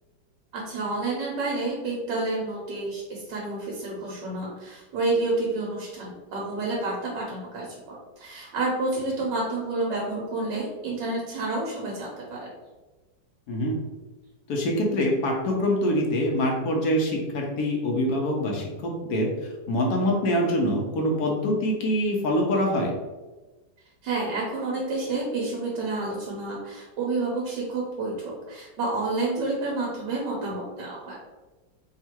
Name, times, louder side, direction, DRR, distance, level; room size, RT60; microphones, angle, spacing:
voice 1, 0.5-12.5 24.0-31.3, right 2 dB, 75° right, -3 dB, 1.4 m, -29 dB
voice 2, 14.5-19.3 19.7-22.9, equal, 65° left, 0 dB, 1.2 m, -24 dB
3.6 x 2.5 x 4.3 m, 1.2 s
omnidirectional pair, 1.9 m